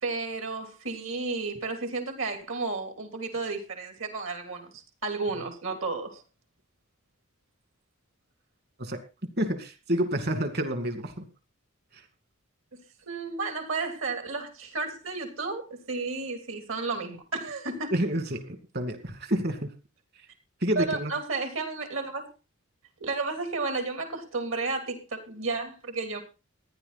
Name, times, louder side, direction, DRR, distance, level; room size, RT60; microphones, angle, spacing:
voice 1, 0.0-6.2 13.1-17.9 20.7-22.2 23.0-26.2, right 3 dB, 65° right, 6 dB, 3.1 m, -32 dB
voice 2, 9.4-11.2 11.9-12.0 17.9-19.7 20.6-21.1, right 1 dB, 50° right, 8 dB, 2.3 m, -29 dB
15.0 x 10.5 x 4.1 m, 0.30 s
head